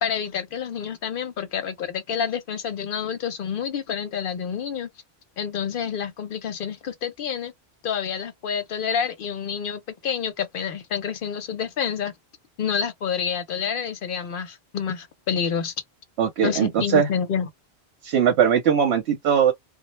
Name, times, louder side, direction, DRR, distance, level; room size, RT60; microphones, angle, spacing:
voice 1, 0.0-4.9 5.4-7.5 7.8-12.1 12.6-15.7 16.4-17.5, left 7 dB, 60° left, 0.7 m, -28 dB
voice 2, 16.2-17.1 18.0-19.5, right 8 dB, 75° right, 0.9 m, -20 dB
2.1 x 2.0 x 3.0 m
omnidirectional pair, 1.1 m